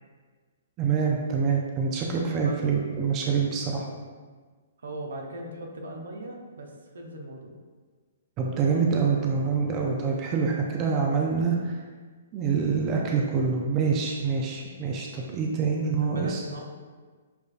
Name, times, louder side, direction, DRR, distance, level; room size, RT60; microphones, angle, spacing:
voice 1, 0.8-3.8 8.4-11.7 12.3-16.4, right 5 dB, 30° right, 0 dB, 0.5 m, -26 dB
voice 2, 4.8-7.5 16.0-16.6, right 2 dB, 75° right, 1 dB, 0.7 m, -38 dB
6.9 x 2.5 x 2.5 m, 1.4 s
hypercardioid pair, 135°, 0 cm